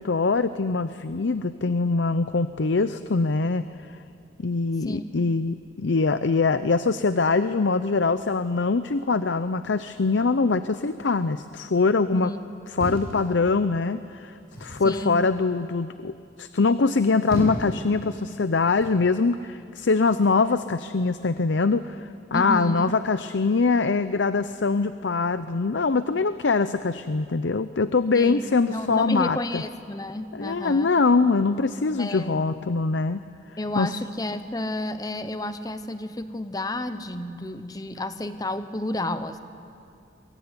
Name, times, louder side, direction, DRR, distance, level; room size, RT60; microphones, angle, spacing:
voice 1, 0.0-3.7 4.4-12.3 12.7-14.3 14.6-29.6 30.3-33.2 33.8-33.9, left 4 dB, 90° left, 12 dB, 0.7 m, -23 dB
voice 2, 12.1-12.6 14.8-15.3 22.3-22.9 28.1-30.9 32.0-32.5 33.6-39.4, left 1 dB, 20° left, 10 dB, 1.0 m, -31 dB
sound 1, 12.8-13.8 14.5-14.9 16.9-17.8 18.8-19.0, left 1 dB, 55° left, 7.2 m, -33 dB
23.0 x 22.5 x 9.7 m, 2.5 s
head